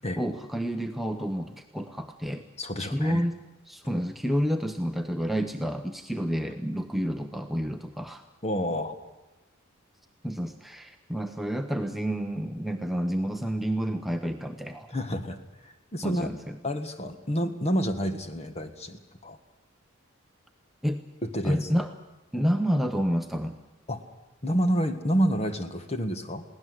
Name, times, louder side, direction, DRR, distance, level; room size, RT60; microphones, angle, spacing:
voice 1, 0.2-2.5 2.8-3.4 3.7-8.2 10.2-15.0 16.0-16.4 20.8-21.0 21.4-21.9 22.3-23.6, equal, ahead, 5 dB, 0.7 m, -29 dB
voice 2, 2.6-3.3 8.4-9.0 14.9-15.4 15.6-16.3 16.6-19.4 21.2-21.7 23.9-24.0 24.4-26.4, equal, 30° left, 8 dB, 1.6 m, -29 dB
22.0 x 17.0 x 7.9 m, 1.1 s
head